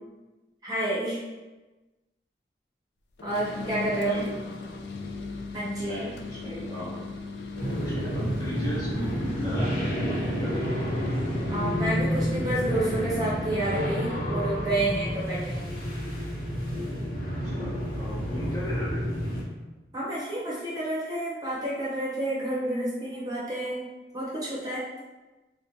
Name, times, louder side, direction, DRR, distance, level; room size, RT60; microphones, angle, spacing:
voice 1, 0.6-1.2 3.2-4.2 5.5-6.1 11.5-15.7 19.9-23.8 24.1-24.8, right 1 dB, 20° right, -7 dB, 0.8 m, -29 dB
sound 1, 3.2-13.2, left 3 dB, 75° left, 0.4 m, -38 dB
voice 2, 5.8-7.0 7.6-10.8 17.4-19.0, equal, 20° left, -8 dB, 0.9 m, -37 dB
sound 2, 7.6-19.4, equal, 55° left, 0.9 m, -29 dB
4.2 x 2.1 x 2.8 m, 1.1 s
head